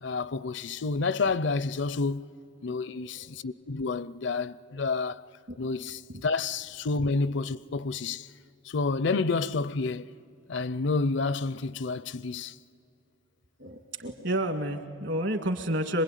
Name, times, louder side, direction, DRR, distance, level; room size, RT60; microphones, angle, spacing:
voice 1, 0.0-2.3 2.6-5.3 5.6-8.3 8.6-10.2 10.5-12.6, left 3 dB, 60° left, 0.5 m, -29 dB
voice 2, 2.9-3.3 5.5-5.6 6.1-6.2 13.6-16.0, right 1 dB, 60° right, 2.0 m, -30 dB
26.0 x 21.0 x 9.2 m
head